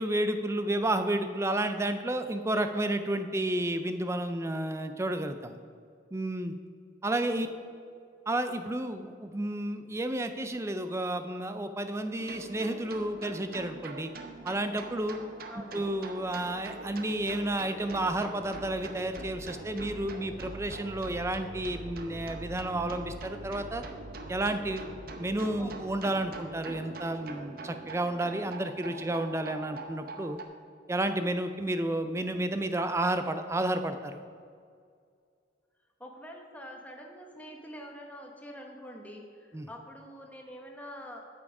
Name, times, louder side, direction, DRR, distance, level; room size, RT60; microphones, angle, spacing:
voice 1, 0.0-5.6 6.1-6.5 7.0-7.5 8.3-14.1 14.4-15.2 15.7-23.8 24.3-24.8 25.2-30.4 30.9-34.2 39.5-39.7, right 1 dB, 15° right, 9 dB, 0.4 m, -31 dB
voice 2, 7.2-7.7 15.5-15.9 25.6-25.7 36.0-41.2, equal, 10° left, 1 dB, 1.0 m, -46 dB
sound 1, 12.2-30.4, right 2 dB, 50° right, 0.8 m, -43 dB
8.3 x 7.6 x 4.8 m, 2.2 s
head